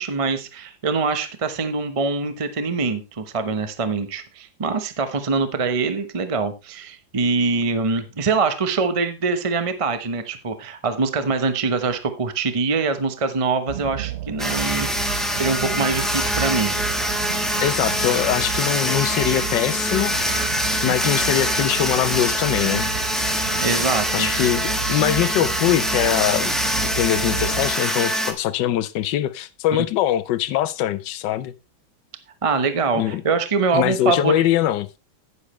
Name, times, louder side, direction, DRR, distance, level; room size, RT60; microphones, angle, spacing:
voice 1, 0.0-15.1 15.4-16.7 23.6-24.3 29.7-29.8 32.4-34.5, right 4 dB, 25° right, 0.7 m, -24 dB
sound 1, 13.7-27.7, right 11 dB, 75° right, 0.6 m, -32 dB
sound 2, 14.4-28.3, equal, ahead, 1.0 m, -24 dB
voice 2, 17.6-20.1 20.8-22.9 24.1-26.5 26.8-31.5 33.0-33.2 33.7-34.9, left 12 dB, 70° left, 1.3 m, -22 dB
10.0 x 9.8 x 3.2 m
omnidirectional pair, 2.1 m